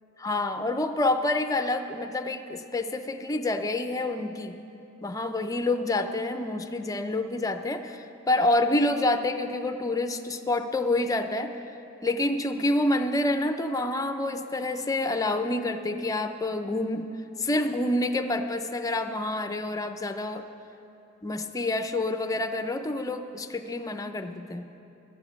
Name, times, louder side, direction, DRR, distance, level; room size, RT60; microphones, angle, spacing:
voice 1, 0.2-4.6 5.0-11.5 12.0-17.1 17.4-20.4 21.2-24.7, left 2 dB, 15° left, 7 dB, 0.5 m, -28 dB
12.5 x 7.1 x 8.0 m, 2.8 s
head